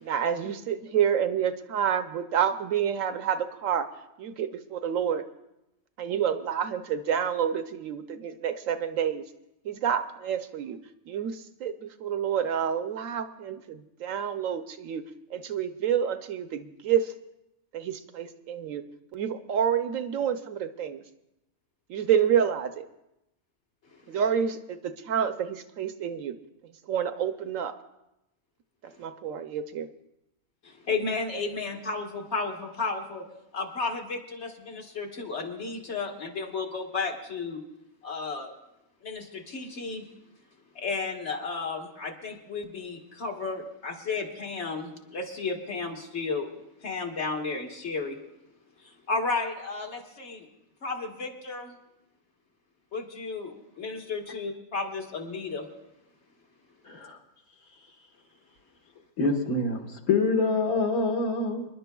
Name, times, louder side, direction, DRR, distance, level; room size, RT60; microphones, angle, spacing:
voice 1, 0.0-3.9 4.2-5.2 6.0-9.2 9.6-10.8 11.1-15.0 15.3-17.1 17.7-18.8 19.1-21.0 21.9-22.8 24.1-26.3 26.9-27.7 29.0-29.9, right 8 dB, 70° right, 9 dB, 1.0 m, -28 dB
voice 2, 30.6-33.3 33.5-37.6 38.0-38.5 39.0-40.1 40.8-46.5 46.8-48.2 48.8-50.5 50.8-51.8 52.9-55.7, left 4 dB, 50° left, 2 dB, 1.7 m, -33 dB
voice 3, 56.9-57.2 59.2-61.7, left 3 dB, 80° left, 2 dB, 1.9 m, -26 dB
27.5 x 11.0 x 2.3 m, 0.89 s
omnidirectional pair, 1.5 m